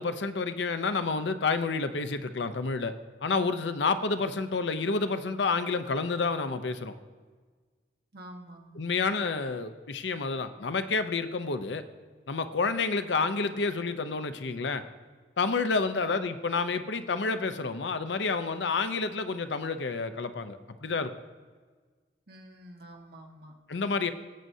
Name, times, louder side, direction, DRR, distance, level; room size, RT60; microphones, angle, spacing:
voice 1, 0.0-2.9 3.2-6.9 8.8-11.8 12.3-14.8 15.4-21.1 23.7-24.1, left 4 dB, 80° left, 10 dB, 0.6 m, -29 dB
voice 2, 8.1-8.9 15.9-16.2 22.3-23.5, right 1 dB, 60° right, 1 dB, 1.5 m, -48 dB
19.5 x 7.7 x 2.7 m, 1.5 s
head